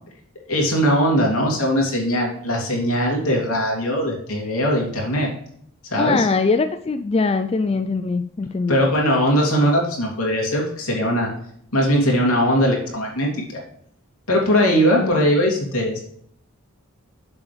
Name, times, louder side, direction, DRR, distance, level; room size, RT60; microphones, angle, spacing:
voice 1, 0.5-5.3 5.8-6.3 8.7-11.3 11.7-13.6 14.3-16.0, equal, 85° left, -1 dB, 2.8 m, -20 dB
voice 2, 6.0-8.8 15.0-15.1, left 4 dB, 25° left, 9 dB, 0.3 m, -22 dB
7.7 x 7.3 x 3.3 m, 0.66 s
head